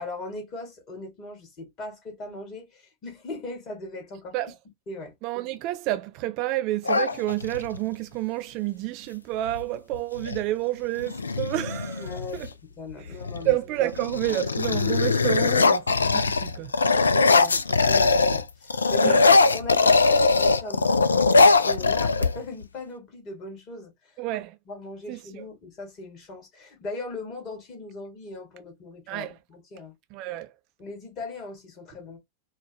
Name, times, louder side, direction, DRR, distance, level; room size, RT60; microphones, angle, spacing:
voice 1, 0.0-4.3 4.9-5.1 12.0-13.6 17.1-24.2 24.7-29.9 30.8-32.2, left 2 dB, 35° left, 1.9 m, -39 dB
voice 2, 5.2-12.5 13.0-13.2 13.4-16.8 19.0-19.3 24.2-24.6 25.1-25.5 29.1-29.4 30.1-30.5, right 16 dB, 40° right, 0.4 m, -29 dB
sound 1, 6.8-7.8 9.5-9.6 9.9-10.4 11.0-12.5 13.1-13.5 13.9-18.4 18.7-22.6, left 3 dB, 75° left, 0.3 m, -21 dB
4.3 x 2.2 x 2.9 m
figure-of-eight pair, 90°, 0 cm